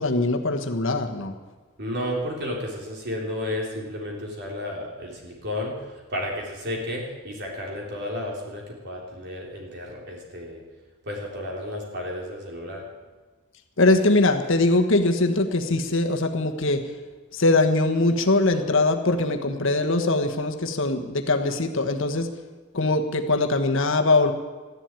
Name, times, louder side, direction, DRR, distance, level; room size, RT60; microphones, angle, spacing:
voice 1, 0.0-1.3 13.8-16.8 17.3-22.3 22.7-24.3, left 2 dB, 60° left, 5 dB, 1.3 m, -22 dB
voice 2, 1.8-5.8 6.1-10.6 11.0-12.8, left 1 dB, 50° right, -1 dB, 3.6 m, -32 dB
14.5 x 11.0 x 9.0 m, 1.3 s
head